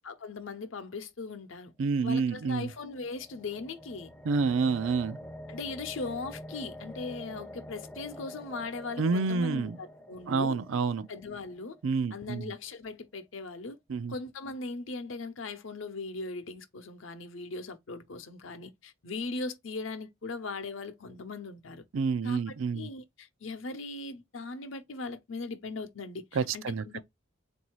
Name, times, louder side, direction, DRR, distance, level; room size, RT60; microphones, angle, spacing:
voice 1, 0.0-1.7 2.0-4.1 5.5-10.6 11.1-11.8 12.1-13.8 14.1-21.8 22.2-27.0, left 3 dB, 75° left, 0.8 m, -39 dB
voice 2, 1.8-2.7 4.2-5.2 9.0-9.8 10.3-11.1 11.8-12.5 13.9-14.1 21.9-22.9 26.3-26.8, right 4 dB, 80° right, 0.4 m, -28 dB
sound 1, 2.2-12.2, left 1 dB, 10° left, 0.4 m, -47 dB
3.9 x 2.7 x 4.5 m
head